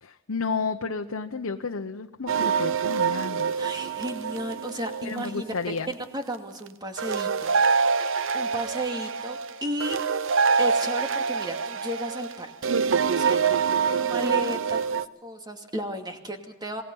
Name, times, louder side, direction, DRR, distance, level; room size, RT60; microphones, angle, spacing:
voice 1, 0.0-3.5 5.0-5.9, left 4 dB, 90° left, 4 dB, 0.9 m, -32 dB
sound 1, 2.3-5.8 7.0-15.0, right 5 dB, 65° right, 0.8 m, -25 dB
voice 2, 3.5-7.5 7.9-10.0 10.6-12.7 13.2-13.4 13.7-16.8, right 1 dB, 20° right, 4 dB, 2.4 m, -34 dB
27.0 x 19.5 x 5.6 m, 0.92 s
head